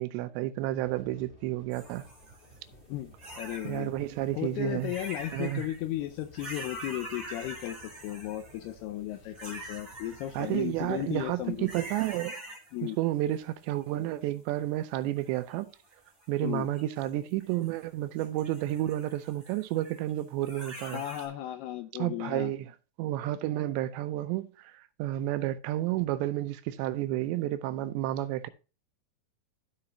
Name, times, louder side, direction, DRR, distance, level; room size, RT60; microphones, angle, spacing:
voice 1, 0.0-2.1 3.6-4.9 5.3-5.7 10.3-12.4 12.8-15.7 16.3-21.0 22.0-22.7 23.0-28.5, right 14 dB, 85° right, 2.8 m, -31 dB
sound 1, 0.8-12.1, right 1 dB, 20° left, 1.7 m, -56 dB
sound 2, 1.7-2.6 3.2-3.9 4.7-5.8 6.2-8.7 9.3-11.2 11.6-12.9 13.3-14.3 15.2-16.3 16.7-17.8 18.2-21.3, right 1 dB, 10° right, 1.6 m, -45 dB
voice 2, 2.9-3.9 4.4-11.7 12.7-13.0 16.4-16.7 20.9-22.5, left 14 dB, 80° left, 2.4 m, -35 dB
14.0 x 4.8 x 2.8 m
omnidirectional pair, 5.1 m